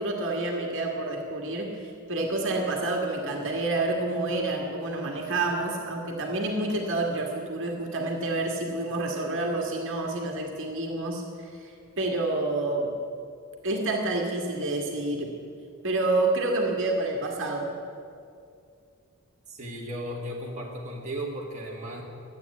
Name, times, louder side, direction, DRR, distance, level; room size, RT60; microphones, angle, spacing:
voice 1, 0.0-12.9 13.6-15.3 15.8-17.7, right 2 dB, 60° right, 0 dB, 1.8 m, -28 dB
voice 2, 19.5-22.0, right 1 dB, 35° right, -3 dB, 1.8 m, -35 dB
12.5 x 8.9 x 8.4 m, 2.4 s
head